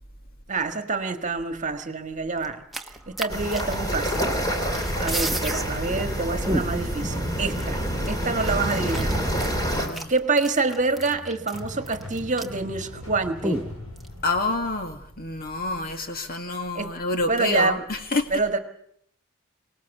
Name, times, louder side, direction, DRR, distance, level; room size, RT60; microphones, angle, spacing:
voice 1, 0.5-4.3 5.0-7.8 8.1-9.2 10.1-13.7 16.7-16.9 17.3-17.8 18.3-18.6, right 3 dB, 35° right, 7 dB, 1.7 m, -27 dB
sound 1, 2.4-4.4 4.7-5.6 6.0-6.1 6.4-7.0 7.6-7.7 8.0-12.7 12.9-13.0 13.4-14.1, right 1 dB, ahead, 1.2 m, -31 dB
sound 2, 3.3-9.9, equal, 15° left, 3.3 m, -27 dB
sound 3, 3.7-15.6, left 1 dB, 75° left, 6.1 m, -41 dB
voice 2, 9.7-10.1 14.2-18.3, left 2 dB, 45° left, 6 dB, 2.0 m, -28 dB
24.5 x 19.0 x 7.2 m, 0.68 s
head